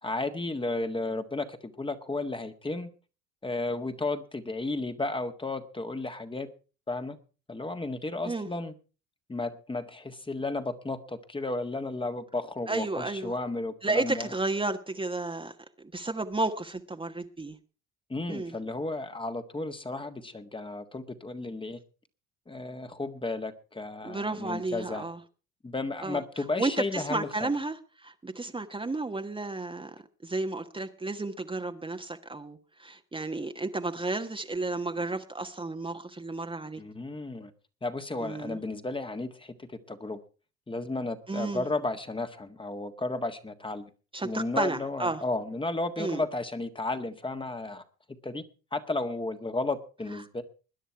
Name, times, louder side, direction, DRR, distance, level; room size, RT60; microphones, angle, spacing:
voice 1, 0.0-2.9 3.4-6.5 6.9-7.2 7.5-8.7 9.3-14.3 18.1-21.8 22.5-25.0 25.6-27.5 36.8-37.5 37.8-40.2 40.7-43.9 44.2-47.8 48.2-48.4 48.7-50.4, left 2 dB, 15° left, 1.7 m, -33 dB
voice 2, 12.7-13.3 13.8-17.6 18.3-18.5 24.0-25.2 26.0-26.2 26.6-29.9 30.2-36.8 38.2-38.6 41.3-41.6 44.1-45.2 46.0-46.2, right 2 dB, 15° right, 1.3 m, -32 dB
21.0 x 10.0 x 4.6 m
supercardioid pair, 75°, 33 cm